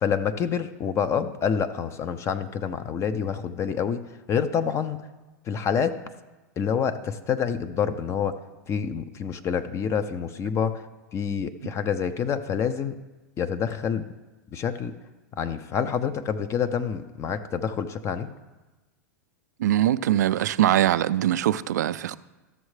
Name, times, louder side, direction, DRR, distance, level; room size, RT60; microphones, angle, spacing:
voice 1, 0.0-4.0 4.3-5.0 5.5-6.0 6.6-8.4 8.7-10.8 11.1-13.0 13.4-14.1 14.5-14.9 15.4-18.3, left 7 dB, 30° left, 10 dB, 0.5 m, -27 dB
voice 2, 19.6-22.2, right 12 dB, 80° right, 16 dB, 0.4 m, -22 dB
13.5 x 6.4 x 3.2 m, 1.1 s
hypercardioid pair, 105°, 9 cm